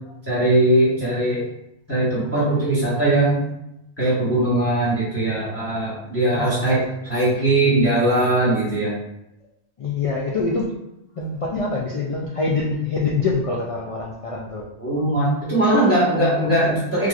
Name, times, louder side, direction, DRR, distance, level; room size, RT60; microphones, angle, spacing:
voice 1, 0.3-1.4 1.9-3.4 4.0-8.9 14.8-17.1, right 1 dB, 15° left, -9 dB, 1.4 m, -20 dB
voice 2, 6.3-6.8 9.8-10.7 11.2-14.7, left 3 dB, 65° left, -2 dB, 0.3 m, -25 dB
4.4 x 2.5 x 2.4 m, 0.85 s
omnidirectional pair, 1.1 m